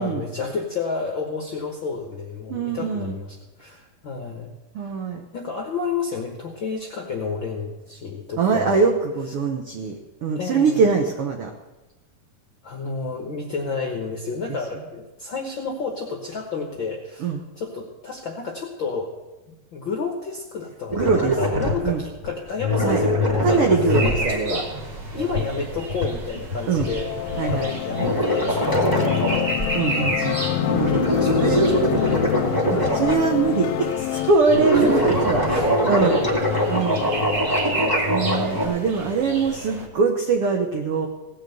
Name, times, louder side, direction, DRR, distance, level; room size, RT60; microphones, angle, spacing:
voice 1, 0.0-5.0 5.3-8.9 10.3-10.8 12.6-19.1 19.5-23.9 24.2-24.6 25.1-27.1 27.5-30.7 31.1-33.0 34.7-35.7 35.9-36.8 37.4-37.5, left 4 dB, 65° left, 2 dB, 1.2 m, -31 dB
voice 2, 2.5-3.2 4.7-5.2 8.4-11.5 17.2-17.4 20.9-21.3 21.8-22.0 22.8-23.0 23.4-24.6 26.7-26.9 27.4-27.7 29.7-30.4 30.7-30.9 31.4-31.7 32.7-36.2 36.7-37.1 38.1-41.1, right 5 dB, 85° right, 3 dB, 1.2 m, -23 dB
sound 1, 20.9-21.9 22.2-22.3 22.6-29.7 30.1-30.2 30.5-33.6 34.4-38.6, equal, 5° right, 1.9 m, -23 dB
sound 2, 23.9-39.9, right 2 dB, 45° right, 1.5 m, -33 dB
sound 3, 26.8-34.3, left 16 dB, 90° left, 2.4 m, -26 dB
17.5 x 6.5 x 7.8 m, 1.1 s
omnidirectional pair, 4.1 m